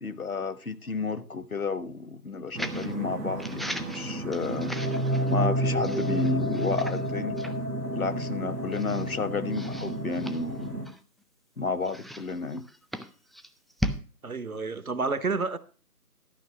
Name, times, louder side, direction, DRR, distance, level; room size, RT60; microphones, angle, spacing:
voice 1, 0.0-4.7 5.3-7.4 7.9-10.8 11.6-12.6, left 4 dB, 65° left, 0.9 m, -31 dB
sound 1, 2.6-2.9 3.4-5.4 5.8-7.1 7.4-7.6 8.1-8.2 8.7-9.1 9.5-11.2 11.8-14.0, equal, ahead, 0.4 m, -37 dB
sound 2, 2.6-10.9, right 1 dB, 85° right, 1.5 m, -30 dB
voice 2, 14.2-15.6, right 4 dB, 65° right, 0.9 m, -29 dB
12.0 x 5.7 x 5.7 m
figure-of-eight pair, 165°, 46 cm